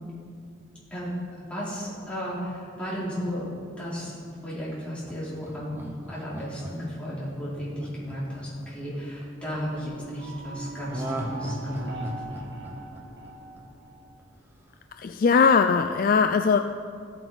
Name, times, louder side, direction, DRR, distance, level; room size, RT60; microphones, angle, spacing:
voice 1, 1.5-4.2 4.4-12.1, equal, 5° left, -9 dB, 3.5 m, -34 dB
Laughter, 5.0-9.3 10.9-13.9 14.2-14.3, equal, 10° right, 1.1 m, -38 dB
sound 1, 9.3-14.4, right 2 dB, 60° right, 1.4 m, -41 dB
voice 2, 15.0-16.6, left 5 dB, 45° left, 7 dB, 0.3 m, -20 dB
15.0 x 9.1 x 4.0 m, 2.3 s
head